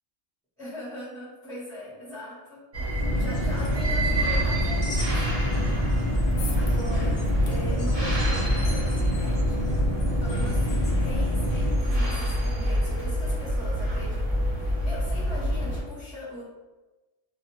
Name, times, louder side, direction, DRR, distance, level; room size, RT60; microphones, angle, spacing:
voice 1, 0.6-2.6 2.9-5.6 6.6-9.7 10.2-16.4, left 1 dB, ahead, -15 dB, 1.0 m, -40 dB
sound 1, 2.7-15.8, equal, 35° right, 0.7 m, -27 dB
sound 2, 3.0-11.8, equal, 40° left, 0.6 m, -28 dB
sound 3, 6.0-12.3, left 4 dB, 70° left, 0.8 m, -47 dB
2.4 x 2.3 x 3.0 m, 1.1 s
omnidirectional pair, 1.2 m